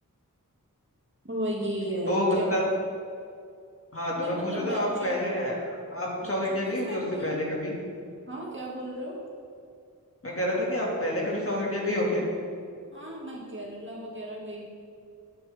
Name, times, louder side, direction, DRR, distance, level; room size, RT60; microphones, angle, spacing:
voice 1, 1.2-2.7 4.2-5.2 6.2-7.4 8.3-9.2 12.9-14.7, right 1 dB, 35° right, -3 dB, 2.4 m, -35 dB
voice 2, 2.0-2.6 3.9-7.7 10.2-12.2, left 1 dB, 45° left, -4 dB, 2.5 m, -28 dB
11.0 x 9.1 x 3.7 m, 2.3 s
wide cardioid pair, 55°, 32 cm